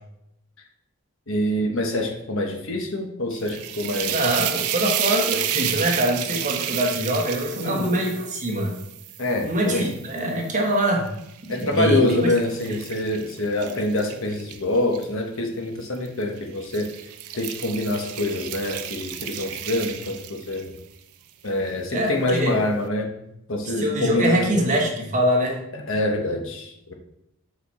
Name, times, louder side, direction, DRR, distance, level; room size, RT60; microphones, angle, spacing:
voice 1, 1.3-4.2 7.6-7.9 9.2-9.9 11.5-16.9 17.3-20.7 21.4-23.1 23.5-24.6 25.7-26.9, left 1 dB, 60° left, 3 dB, 1.1 m, -25 dB
sound 1, 3.3-10.5 11.1-15.0 15.9-16.2 16.6-20.8, right 11 dB, 85° right, 0.6 m, -31 dB
voice 2, 4.1-8.7 9.4-11.1 11.5-12.3 12.7-12.8 21.9-22.6 23.8-25.6, right 1 dB, 35° right, 0 dB, 1.3 m, -24 dB
7.0 x 4.5 x 4.2 m, 0.81 s
head